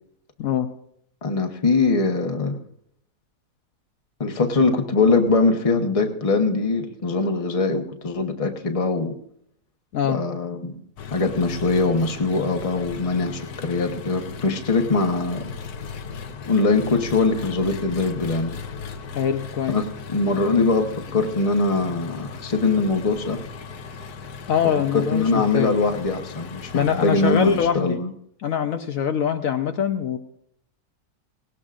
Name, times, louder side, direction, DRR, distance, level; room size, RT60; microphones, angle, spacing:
voice 1, 1.2-2.6 4.2-9.1 10.0-10.8 11.1-15.5 16.5-18.5 19.7-19.8 20.1-23.4 24.9-28.1, left 3 dB, 25° left, 4 dB, 1.0 m, -22 dB
Engine, 11.0-27.7, left 5 dB, 85° left, 1.4 m, -37 dB
voice 2, 19.1-19.8 24.5-25.7 26.7-28.0 28.4-30.2, left 8 dB, 65° left, 6 dB, 1.1 m, -23 dB
18.0 x 18.0 x 2.5 m, 0.70 s
omnidirectional pair, 1.6 m